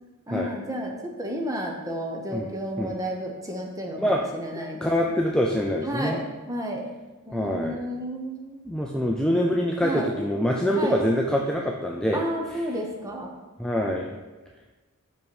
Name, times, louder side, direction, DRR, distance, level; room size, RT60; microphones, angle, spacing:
voice 1, 0.3-5.2 5.8-6.9 7.3-8.6 9.8-10.1 10.7-11.0 12.1-13.3, equal, 15° right, 1 dB, 0.8 m, -32 dB
voice 2, 4.8-6.2 7.3-7.8 8.7-12.2 12.5-12.6 13.6-14.2, equal, 5° left, -1 dB, 0.3 m, -25 dB
5.5 x 5.4 x 4.6 m, 1.2 s
head